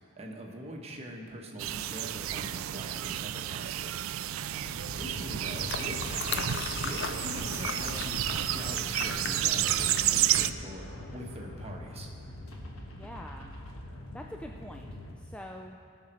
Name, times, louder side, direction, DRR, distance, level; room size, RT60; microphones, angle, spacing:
voice 1, 0.2-3.9 4.9-12.1, equal, 30° right, 0 dB, 1.2 m, -43 dB
sound 1, 1.6-10.5, right 13 dB, 70° right, 0.3 m, -31 dB
voice 2, 4.4-4.7 12.9-13.5 14.1-14.9 15.1-15.8, equal, 5° left, 1 dB, 0.3 m, -45 dB
sound 2, 4.6-15.2, left 1 dB, 80° left, 1.3 m, -44 dB
sound 3, 5.5-10.5, left 6 dB, 55° left, 0.5 m, -38 dB
17.0 x 6.3 x 4.4 m, 2.4 s
head